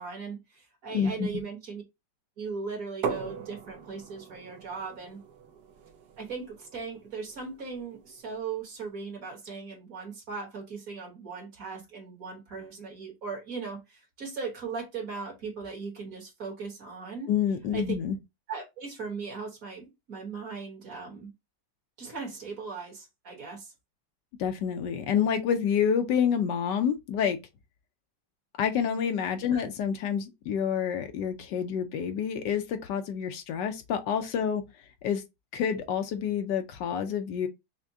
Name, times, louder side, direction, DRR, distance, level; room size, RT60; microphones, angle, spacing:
voice 1, 0.0-1.8 2.4-5.2 6.2-17.3 17.7-17.9 18.5-21.3 22.0-23.7 29.5-29.6, right 5 dB, 50° right, 1.7 m, -38 dB
voice 2, 0.9-1.3 17.3-18.2 24.4-27.4 28.6-34.6 35.0-35.2 35.5-37.5, left 8 dB, 75° left, 1.2 m, -28 dB
sound 1, 3.0-8.7, right 6 dB, 70° right, 1.3 m, -40 dB
5.9 x 2.2 x 2.6 m
omnidirectional pair, 1.9 m